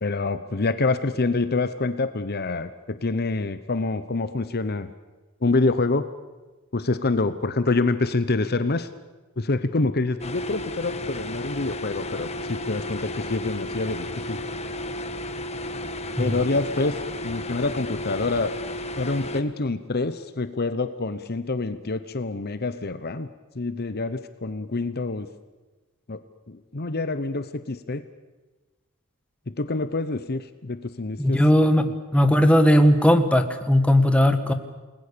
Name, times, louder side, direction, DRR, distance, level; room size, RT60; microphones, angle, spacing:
voice 1, 0.0-4.9 5.4-6.1 6.7-8.9 9.4-14.4 16.2-17.0 17.2-18.5 19.0-23.3 23.5-25.3 26.1-26.2 26.5-28.0 29.5-31.4 31.8-31.9, left 3 dB, 50° left, 11 dB, 0.9 m, -26 dB
sound 1, 10.2-19.4, left 1 dB, 30° left, 1.4 m, -33 dB
voice 2, 31.2-31.9 32.1-34.5, equal, 5° left, 7 dB, 1.5 m, -18 dB
29.0 x 20.5 x 6.9 m, 1.2 s
head